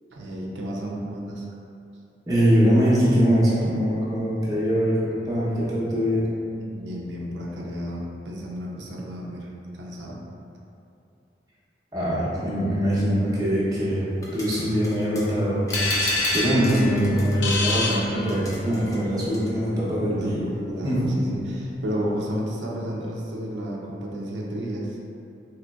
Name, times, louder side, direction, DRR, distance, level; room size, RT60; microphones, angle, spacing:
voice 1, 0.1-1.5 6.6-9.5 9.8-10.2 20.0-25.0, equal, 85° right, -3 dB, 0.5 m, -32 dB
voice 2, 2.3-5.0 5.3-6.2 11.9-14.0 14.3-15.7 16.3-20.4 20.8-21.2, equal, 20° right, -9 dB, 0.7 m, -22 dB
sound 1, 14.1-19.5, left 1 dB, 20° left, 0.4 m, -42 dB
sound 2, 15.7-18.7, left 2 dB, 65° left, 0.6 m, -26 dB
3.8 x 2.9 x 2.3 m, 2.6 s
head